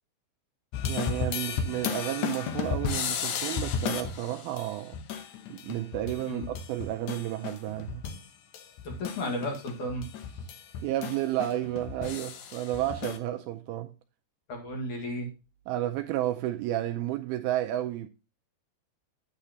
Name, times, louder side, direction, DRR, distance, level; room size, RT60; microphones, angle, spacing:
sound 1, 0.7-8.2 8.5-13.2, left 6 dB, 75° left, 1.7 m, -34 dB
voice 1, 0.9-5.0 5.5-8.1 10.8-13.9 15.7-18.1, right 13 dB, 80° right, 2.3 m, -32 dB
voice 2, 8.8-10.5 14.5-15.3, equal, 55° left, 2.9 m, -34 dB
8.9 x 8.7 x 2.8 m
omnidirectional pair, 4.7 m